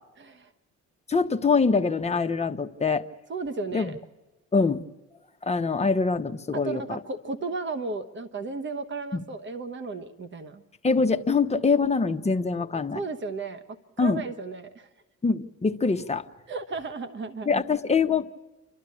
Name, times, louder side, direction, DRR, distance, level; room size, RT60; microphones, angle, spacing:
voice 1, 0.2-0.5 3.3-3.9 6.5-10.6 12.9-13.6 14.0-14.9 16.5-17.6, right 3 dB, 40° right, 9 dB, 1.2 m, -34 dB
voice 2, 1.1-3.0 3.7-3.9 4.5-4.8 5.4-7.0 9.1-9.2 10.8-13.0 14.0-14.2 15.2-16.3 17.4-18.3, left 4 dB, 20° left, 6 dB, 1.1 m, -24 dB
29.5 x 12.5 x 8.6 m, 1.1 s
cardioid pair, 90°, 30 cm